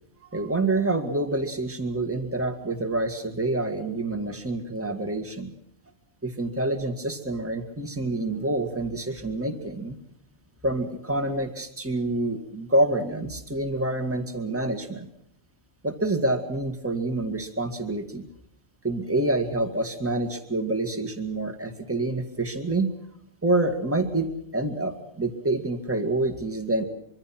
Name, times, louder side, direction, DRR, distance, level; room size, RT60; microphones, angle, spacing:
voice 1, 0.3-5.5 6.2-10.0 10.6-15.1 15.8-18.3 18.8-22.9 23.4-26.9, right 2 dB, 10° right, 6 dB, 2.0 m, -27 dB
25.0 x 23.5 x 6.0 m, 0.71 s
omnidirectional pair, 1.2 m